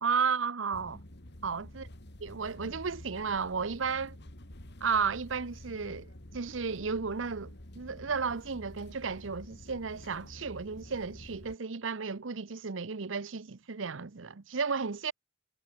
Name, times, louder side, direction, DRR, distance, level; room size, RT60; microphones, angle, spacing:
voice 1, 0.0-1.0 1.4-1.9 2.2-4.2 4.8-15.1, right 5 dB, 85° right, 0.9 m, -33 dB
sound 1, 0.7-11.6, left 1 dB, 60° left, 3.2 m, -49 dB
head